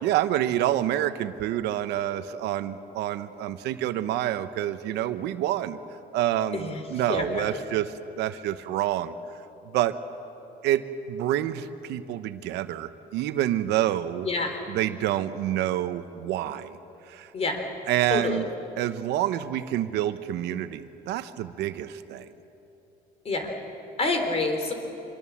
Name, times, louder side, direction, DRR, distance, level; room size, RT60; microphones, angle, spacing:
voice 1, 0.0-5.8 6.1-9.1 9.6-10.0 10.6-14.3 14.7-16.8 17.1-17.3 17.9-18.5 18.8-22.3, right 12 dB, 85° right, 11 dB, 1.0 m, -28 dB
voice 2, 7.1-7.5 14.2-14.6 17.3-17.6 18.1-18.4 23.3-23.5 24.0-24.7, left 3 dB, 35° left, 5 dB, 3.7 m, -27 dB
25.5 x 22.0 x 7.3 m, 2.9 s
cardioid pair, 110°, 17 cm